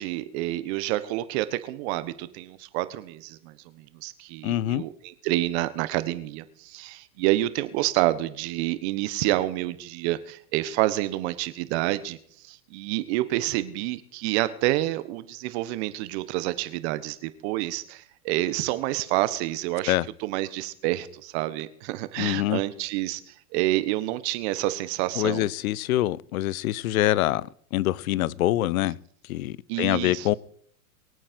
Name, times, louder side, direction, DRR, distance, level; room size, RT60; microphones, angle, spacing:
voice 1, 0.0-12.2 12.4-25.5 29.7-30.4, right 16 dB, 45° right, 1.4 m, -28 dB
voice 2, 4.4-4.8 19.9-20.0 22.2-22.6 25.2-29.0 29.3-30.3, left 15 dB, 65° left, 0.7 m, -25 dB
24.0 x 8.8 x 4.6 m
hypercardioid pair, 135°, 45 cm